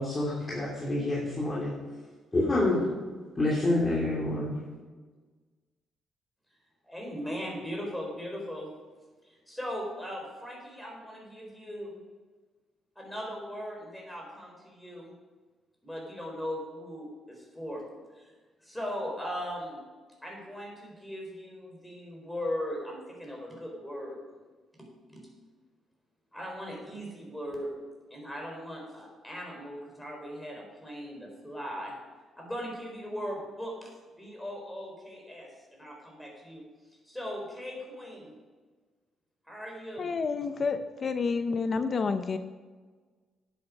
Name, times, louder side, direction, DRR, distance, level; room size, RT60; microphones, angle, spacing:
voice 1, 0.0-1.7 2.3-2.8 3.4-4.5, left 2 dB, 25° left, -5 dB, 3.0 m, -27 dB
voice 2, 6.8-8.7 9.3-12.0 13.0-15.1 15.8-17.8 18.1-18.3 18.6-19.8 20.2-24.2 25.1-25.2 26.3-27.7 28.1-31.9 32.4-33.9 34.2-36.6 37.1-38.3 39.5-40.1, equal, 5° left, -1 dB, 4.2 m, -38 dB
voice 3, 40.0-42.4, left 4 dB, 45° left, 10 dB, 0.7 m, -29 dB
10.5 x 8.7 x 5.3 m, 1.4 s
cardioid pair, 90°, 0 cm